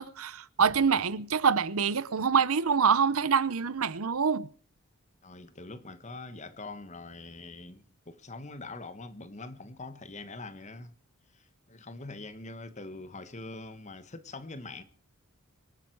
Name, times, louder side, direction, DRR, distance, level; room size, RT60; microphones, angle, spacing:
voice 1, 0.0-4.5, right 6 dB, 80° right, 0.8 m, -26 dB
voice 2, 5.2-10.9 11.3-14.8, left 3 dB, 35° left, 1.3 m, -43 dB
24.5 x 9.2 x 4.7 m
head